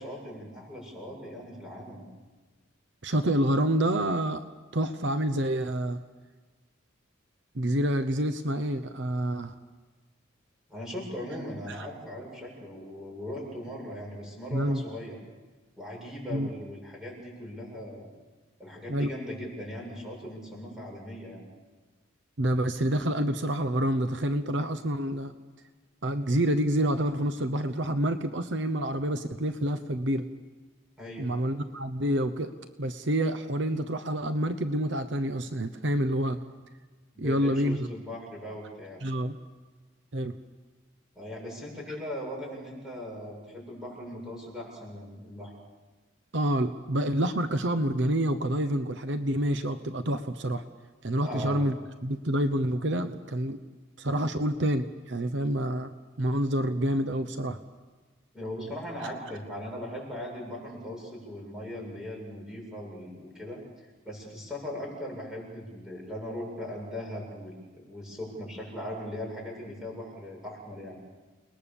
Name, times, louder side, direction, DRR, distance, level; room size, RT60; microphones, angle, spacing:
voice 1, 0.0-2.0 10.7-15.2 15.8-18.1 18.6-21.4 31.0-31.3 37.1-39.0 41.1-45.5 51.2-51.6 58.3-63.6 64.0-71.0, left 1 dB, 5° right, -2 dB, 7.7 m, -39 dB
voice 2, 3.0-4.4 4.7-6.0 7.5-9.5 11.7-11.9 14.5-14.8 16.3-16.5 18.9-19.1 22.4-25.3 26.0-30.3 31.2-32.5 32.8-36.4 37.2-37.9 39.0-39.4 40.1-40.4 46.3-50.6 51.0-51.8 52.0-53.6 54.0-55.9 56.2-57.6, right 1 dB, 60° right, 10 dB, 0.9 m, -28 dB
30.0 x 20.5 x 7.1 m, 1.3 s
head